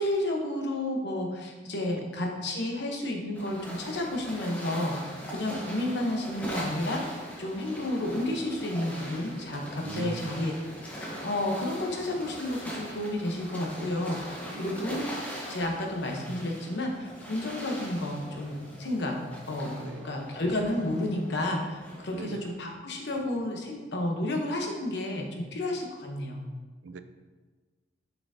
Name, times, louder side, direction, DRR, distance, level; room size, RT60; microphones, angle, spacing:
voice 1, 0.0-10.5 10.9-19.2 19.5-26.4, left 1 dB, 65° left, 1 dB, 1.0 m, -31 dB
sound 1, 3.3-22.5, equal, 10° left, 1.0 m, -41 dB
voice 2, 9.8-10.3 14.6-14.9 19.8-20.1 22.1-22.4 26.8-27.0, right 4 dB, 65° right, 11 dB, 0.4 m, -39 dB
6.8 x 5.8 x 2.8 m, 1.3 s
head